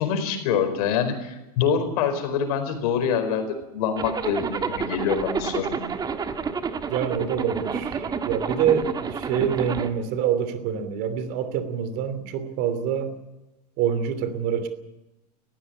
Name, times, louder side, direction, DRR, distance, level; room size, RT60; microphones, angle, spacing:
voice 1, 0.0-3.4 3.7-5.8, left 7 dB, 65° left, 8 dB, 4.7 m, -25 dB
Zipper (clothing), 4.0-9.9, right 5 dB, 20° right, 1.5 m, -29 dB
voice 2, 6.9-13.1 13.8-14.7, right 8 dB, 50° right, 11 dB, 2.9 m, -26 dB
20.0 x 15.5 x 8.6 m, 1.0 s
supercardioid pair, 125°, 21 cm